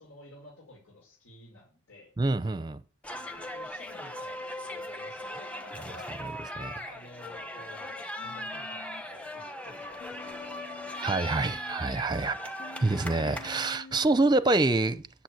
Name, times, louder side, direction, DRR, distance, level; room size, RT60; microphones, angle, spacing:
voice 1, 0.0-2.1 2.4-2.7 3.3-6.1 6.7-7.9 8.2-11.3 12.2-12.3 13.4-13.5, left 1 dB, 90° left, 5.0 m, -52 dB
voice 2, 2.2-2.8 6.6-6.7 11.0-12.3 12.8-15.2, right 2 dB, 20° right, 0.6 m, -26 dB
sound 1, 3.0-13.8, left 1 dB, 5° left, 1.2 m, -39 dB
Human voice, 8.2-9.0 10.0-11.8 12.6-14.2, left 4 dB, 55° left, 1.2 m, -49 dB
9.2 x 8.2 x 8.2 m
head